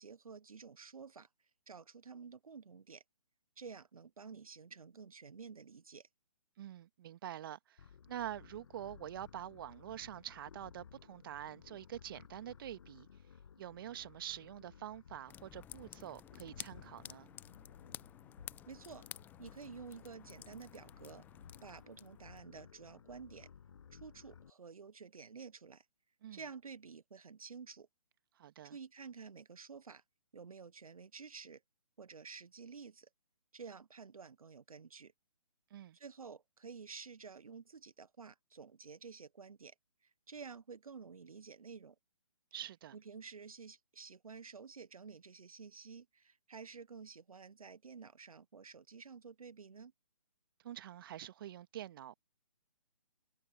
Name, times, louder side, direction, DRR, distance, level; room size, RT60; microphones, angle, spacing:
voice 1, 0.0-3.0 3.6-6.1 18.7-19.1 19.4-21.2 21.6-23.5 23.9-25.9 26.3-27.9 28.6-30.0 30.3-31.6 32.0-33.1 33.5-35.1 35.9-39.7 40.0-41.9 42.9-49.9, right 5 dB, 65° right, 1.0 m, -51 dB
voice 2, 6.6-13.1 13.6-17.3 26.2-26.4 28.4-28.8 35.7-36.0 42.5-43.0 50.6-52.2, right 11 dB, 35° right, 1.8 m, -46 dB
sound 1, 7.8-24.5, left 7 dB, 50° left, 6.8 m, -58 dB
sound 2, 15.3-22.4, left 11 dB, 10° left, 0.8 m, -53 dB
figure-of-eight pair, 140°, 20 cm